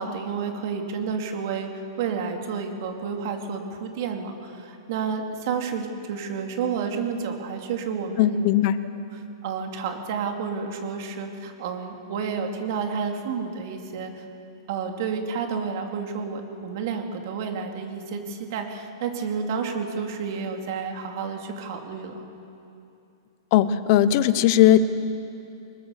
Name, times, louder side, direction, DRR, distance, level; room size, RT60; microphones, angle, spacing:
voice 1, 0.0-8.4 9.1-14.3 14.7-22.2, right 6 dB, 50° right, 4 dB, 2.8 m, -30 dB
voice 2, 8.2-8.8 23.5-24.8, left 12 dB, 45° left, 13 dB, 1.0 m, -18 dB
21.0 x 20.5 x 6.8 m, 2.7 s
hypercardioid pair, 150°, 2 cm